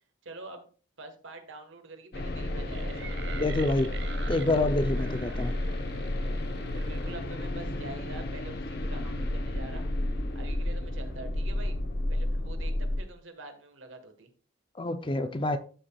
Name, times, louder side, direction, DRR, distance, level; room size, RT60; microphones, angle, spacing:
voice 1, 0.2-0.7 1.0-3.7 6.5-9.9 10.3-11.8 12.1-14.3, right 2 dB, 75° right, 1.4 m, -46 dB
sound 1, 2.1-13.0, left 1 dB, 50° left, 0.9 m, -32 dB
sound 2, 2.7-7.9, right 8 dB, 60° right, 0.6 m, -47 dB
voice 2, 3.4-3.9 4.3-5.5 14.8-15.6, left 2 dB, 25° left, 0.5 m, -27 dB
13.0 x 5.7 x 2.3 m
head